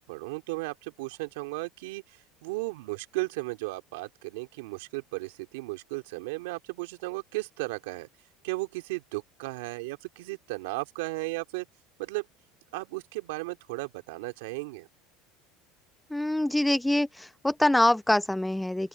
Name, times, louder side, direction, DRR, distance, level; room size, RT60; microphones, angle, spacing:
voice 1, 0.0-8.1 8.4-11.7 12.0-12.2 12.7-14.9, right 23 dB, 80° right, 2.8 m, -35 dB
voice 2, 16.1-18.9, left 1 dB, 5° left, 0.7 m, -25 dB
open air
supercardioid pair, 100°, 0 cm